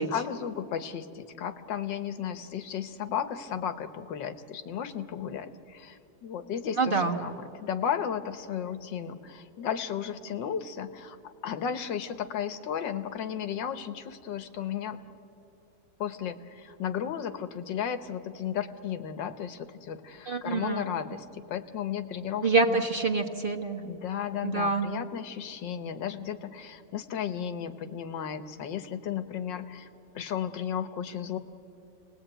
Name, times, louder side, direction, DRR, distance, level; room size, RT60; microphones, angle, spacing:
voice 1, 0.1-15.0 16.0-22.8 23.8-29.9 30.2-31.4, left 8 dB, 75° left, 10 dB, 1.8 m, -34 dB
voice 2, 6.8-7.2 20.3-20.8 22.4-23.8 24.4-24.9, right 3 dB, 30° right, 2 dB, 1.3 m, -26 dB
29.5 x 19.5 x 9.0 m, 2.8 s
omnidirectional pair, 2.0 m